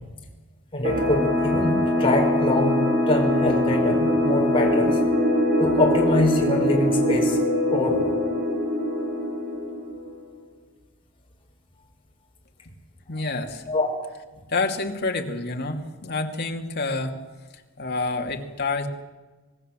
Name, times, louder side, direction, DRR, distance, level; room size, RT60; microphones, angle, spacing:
voice 1, 0.7-5.0 5.6-7.4 7.7-8.1 13.7-13.9, left 2 dB, 25° left, 0 dB, 5.7 m, -24 dB
sound 1, 0.8-10.2, left 1 dB, 45° right, 6.1 m, -23 dB
voice 2, 13.1-13.6 14.5-17.2 17.8-18.9, left 3 dB, 50° left, 3 dB, 2.5 m, -28 dB
26.0 x 18.5 x 7.6 m, 1.3 s
head